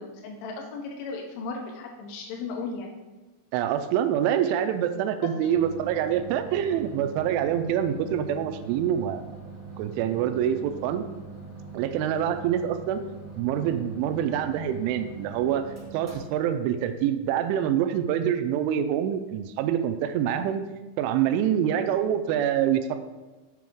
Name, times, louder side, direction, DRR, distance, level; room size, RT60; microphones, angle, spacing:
voice 1, 0.0-2.9 5.4-5.5, left 4 dB, 90° left, 1 dB, 3.2 m, -36 dB
voice 2, 3.5-9.2 9.8-11.1 11.7-13.0 13.4-15.6 15.9-20.6 21.0-23.0, right 9 dB, 85° right, 8 dB, 3.0 m, -26 dB
sound 1, 5.5-18.0, right 4 dB, 30° right, 1.5 m, -43 dB
7.5 x 6.1 x 3.6 m, 1.2 s
omnidirectional pair, 5.5 m